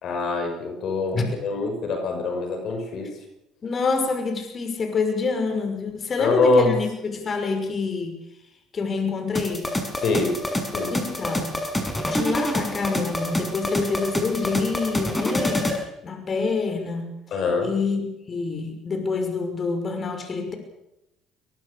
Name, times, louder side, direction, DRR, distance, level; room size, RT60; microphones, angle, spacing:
voice 1, 0.0-3.1 6.2-6.7 10.0-10.4 10.7-10.9 17.3-17.7, left 3 dB, 60° left, 5 dB, 5.8 m, -24 dB
voice 2, 3.6-8.2 8.7-9.7 10.9-11.6 12.0-15.7 16.0-17.1 17.6-20.6, left 4 dB, 40° left, 6 dB, 5.9 m, -27 dB
sound 1, 9.3-15.8, left 1 dB, 15° left, 6.4 m, -27 dB
22.5 x 21.0 x 6.8 m, 0.89 s
hypercardioid pair, 70°, 0 cm